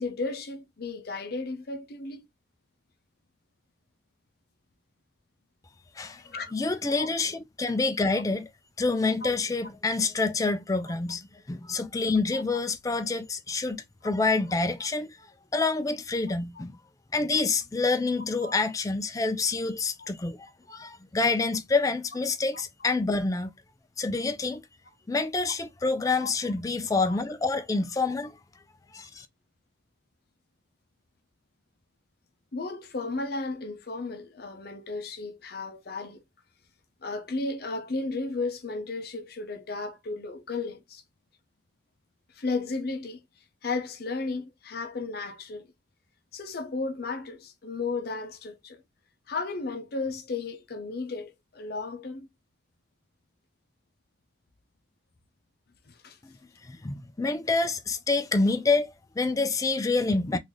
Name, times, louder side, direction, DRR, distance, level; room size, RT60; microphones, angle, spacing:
voice 1, 0.0-2.3 6.0-6.5 6.9-7.1 12.3-12.4 16.6-16.7 18.4-18.6 20.0-20.1 22.5-22.6 26.2-26.3 27.1-27.2 32.5-36.2 37.0-41.0 42.3-43.2 43.6-45.7 46.3-48.8 49.3-52.3 55.9-56.2, left 3 dB, 55° left, 0.6 m, -34 dB
voice 2, 6.5-8.5 8.8-15.2 15.5-16.8 17.1-23.5 24.0-24.6 25.1-28.4 28.9-29.3 56.2-56.4 56.6-60.4, left 3 dB, 20° left, 0.3 m, -27 dB
3.9 x 2.5 x 3.1 m
head